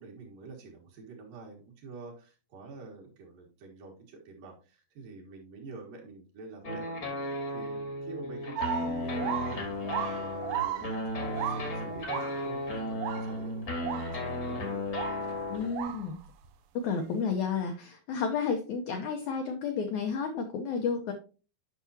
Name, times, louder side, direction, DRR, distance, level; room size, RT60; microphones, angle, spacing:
voice 1, 0.0-12.6 12.9-14.9, right 3 dB, 65° right, 0 dB, 3.2 m, -47 dB
sound 1, 6.6-15.8, left 1 dB, 45° left, 1.2 m, -34 dB
sound 2, 8.6-12.7 13.0-13.5 13.8-14.5 14.9-16.5 16.9-17.0, right 10 dB, 85° right, 2.6 m, -36 dB
voice 2, 15.5-16.2 16.8-21.1, left 5 dB, 80° left, 4 dB, 1.7 m, -31 dB
9.4 x 6.0 x 2.8 m, 0.34 s
omnidirectional pair, 4.4 m